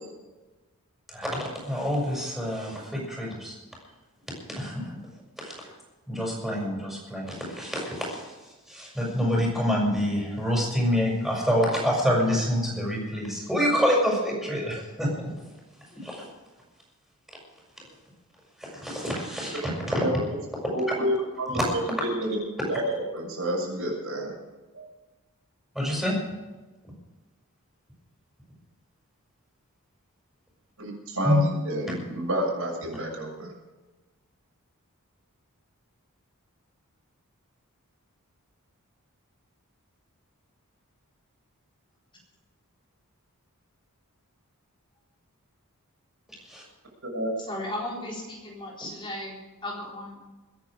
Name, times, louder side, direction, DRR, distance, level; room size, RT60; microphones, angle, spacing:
voice 1, 1.1-3.5 4.5-5.0 5.4-5.7 6.1-8.2 8.7-15.3 16.0-16.2 18.6-20.0 21.5-21.7 25.7-26.1 31.2-31.4 46.5-46.6, equal, ahead, -3 dB, 6.5 m, -27 dB
voice 2, 20.7-22.4 22.7-22.8 23.1-24.4 24.7-24.8 30.8-33.5 47.0-47.3, equal, 70° right, -1 dB, 6.7 m, -29 dB
voice 3, 47.4-50.3, left 1 dB, 20° left, -3 dB, 4.0 m, -36 dB
22.0 x 10.5 x 5.0 m, 1.2 s
head